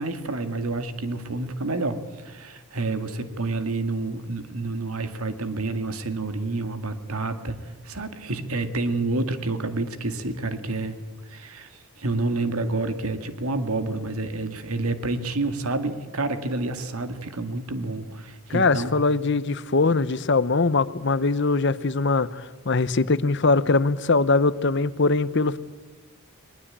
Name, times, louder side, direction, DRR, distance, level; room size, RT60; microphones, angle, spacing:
voice 1, 0.0-7.6 7.8-10.9 11.3-11.7 12.0-18.9, right 2 dB, 80° right, 9 dB, 2.0 m, -29 dB
voice 2, 18.5-25.6, left 3 dB, 55° left, 16 dB, 0.8 m, -22 dB
21.0 x 20.5 x 8.7 m, 1.2 s
head